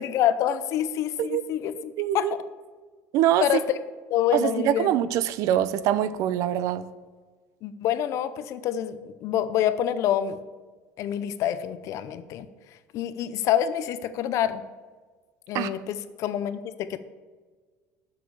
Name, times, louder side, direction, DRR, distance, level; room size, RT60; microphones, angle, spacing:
voice 1, 0.0-2.3 3.4-3.8 4.1-5.0 7.6-10.4 11.0-12.5 12.9-14.6 15.5-17.0, left 10 dB, 60° left, 13 dB, 0.6 m, -27 dB
voice 2, 2.0-2.3 3.1-3.5 4.3-6.9 15.5-15.7, right 11 dB, 65° right, 16 dB, 0.5 m, -24 dB
7.5 x 6.5 x 7.0 m, 1.4 s
cardioid pair, 130°, 6 cm